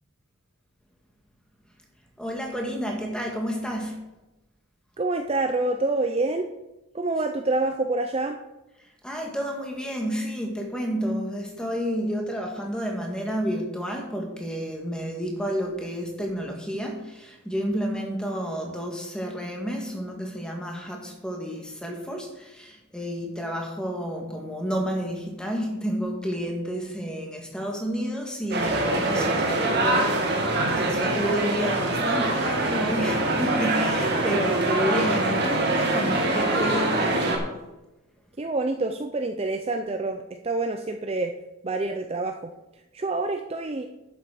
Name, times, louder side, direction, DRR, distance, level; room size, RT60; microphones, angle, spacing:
voice 1, 2.2-4.0 9.0-37.4, equal, 5° left, 1 dB, 1.7 m, -30 dB
voice 2, 5.0-6.5 6.9-8.4 38.4-41.3 41.6-42.5 42.9-43.9, right 2 dB, 25° right, 5 dB, 0.5 m, -27 dB
sound 1, 28.5-37.4, right 2 dB, 50° right, 1.9 m, -24 dB
11.0 x 7.3 x 5.0 m, 1.0 s
head